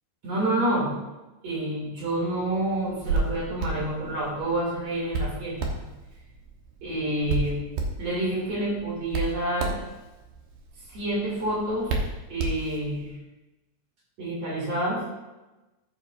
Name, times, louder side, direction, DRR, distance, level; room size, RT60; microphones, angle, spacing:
voice 1, 0.2-0.9 1.4-5.6 6.8-7.6 8.0-9.8 10.9-11.9 12.3-13.1 14.2-15.0, right 1 dB, 45° right, -5 dB, 3.2 m, -28 dB
Hands, 2.8-13.1, right 3 dB, 70° right, 2.2 m, -33 dB
13.0 x 7.8 x 2.5 m, 1.1 s
omnidirectional pair, 5.1 m